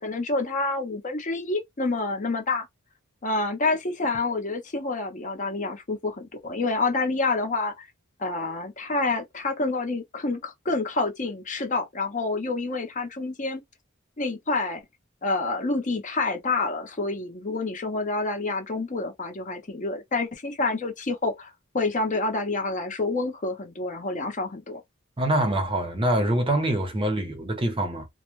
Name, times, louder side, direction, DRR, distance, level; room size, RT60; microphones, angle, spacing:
voice 1, 0.0-2.7 3.2-7.9 8.2-13.6 14.2-14.8 15.2-24.8, left 3 dB, 40° left, 0.7 m, -28 dB
voice 2, 25.2-28.1, right 1 dB, 25° right, 0.7 m, -25 dB
2.2 x 2.1 x 3.0 m
head